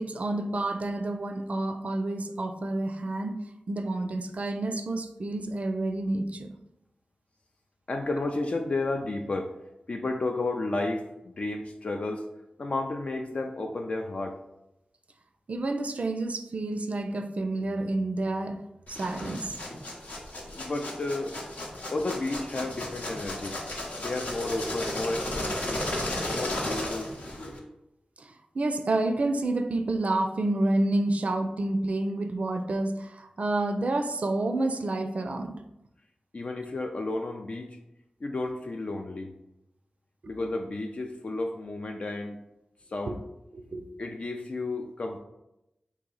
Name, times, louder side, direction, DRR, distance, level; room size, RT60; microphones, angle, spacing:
voice 1, 0.0-3.4 3.7-6.5 15.5-18.6 18.9-19.6 28.2-35.5 40.2-40.3 43.1-43.2 43.5-43.9, right 2 dB, 60° right, 7 dB, 0.4 m, -29 dB
voice 2, 7.9-9.5 9.9-12.3 12.6-14.4 20.5-21.4 21.9-23.6 24.0-25.8 26.3-27.1 36.3-37.8 38.2-39.3 40.3-42.4 42.9-43.2 44.0-45.2, left 2 dB, 55° left, 3 dB, 0.3 m, -32 dB
sound 1, 18.9-27.6, left 1 dB, 75° left, 0.7 m, -34 dB
2.9 x 2.7 x 3.8 m, 0.89 s
cardioid pair, 45°, 3 cm